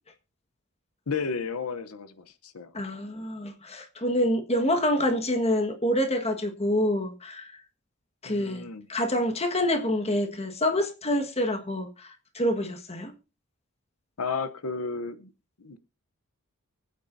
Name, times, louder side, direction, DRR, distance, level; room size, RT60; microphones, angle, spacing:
voice 1, 1.1-2.7 8.2-8.9 14.2-15.3 15.6-15.8, left 5 dB, 80° left, 0.8 m, -33 dB
voice 2, 2.7-7.5 8.2-8.6 8.9-13.1, left 1 dB, 30° left, 1.5 m, -27 dB
24.0 x 9.0 x 2.7 m
head